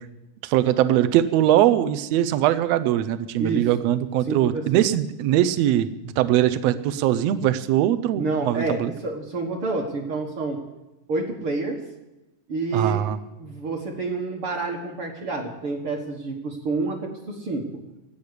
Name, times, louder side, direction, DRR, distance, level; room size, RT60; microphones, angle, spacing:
voice 1, 0.4-8.9 12.7-13.2, right 12 dB, 75° right, 13 dB, 1.6 m, -21 dB
voice 2, 3.4-3.9 4.2-4.8 8.2-10.6 11.1-11.8 12.5-13.0 13.4-17.6, right 3 dB, 50° right, 0 dB, 2.0 m, -28 dB
12.0 x 8.8 x 9.7 m, 0.97 s
omnidirectional pair, 3.6 m